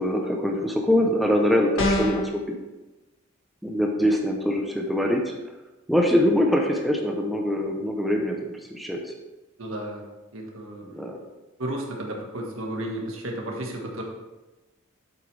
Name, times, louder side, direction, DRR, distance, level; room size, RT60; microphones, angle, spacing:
voice 1, 0.0-2.5 3.6-5.3 5.9-9.1 10.8-11.2, equal, ahead, 0 dB, 0.8 m, -23 dB
sound 1, 1.8-2.3, left 1 dB, 65° left, 1.7 m, -23 dB
voice 2, 9.6-10.0 10.3-10.8 11.6-14.0, right 1 dB, 75° right, 0 dB, 1.7 m, -33 dB
8.4 x 8.0 x 3.4 m, 1.1 s
head